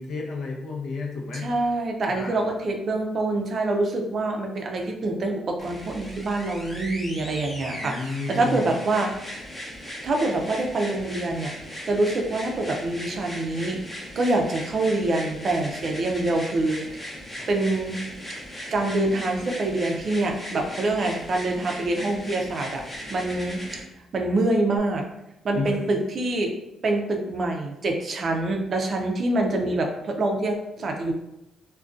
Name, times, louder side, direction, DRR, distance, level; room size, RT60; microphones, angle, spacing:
voice 1, 0.0-1.5 2.1-2.5 7.8-8.9 17.4-17.5 25.5-25.8 29.6-29.8, left 3 dB, 70° left, 0 dB, 0.5 m, -32 dB
voice 2, 1.4-9.3 10.0-11.5 11.9-13.8 14.2-16.8 17.5-18.0 18.7-22.8 23.1-23.6 24.1-25.0 25.4-26.5 26.8-29.9 30.2-31.1, right 2 dB, 50° right, 2 dB, 0.4 m, -25 dB
sound 1, 5.6-23.8 24.8-24.9, equal, 15° left, 0.7 m, -38 dB
2.4 x 2.1 x 2.4 m, 0.90 s
cardioid pair, 90°, 0 cm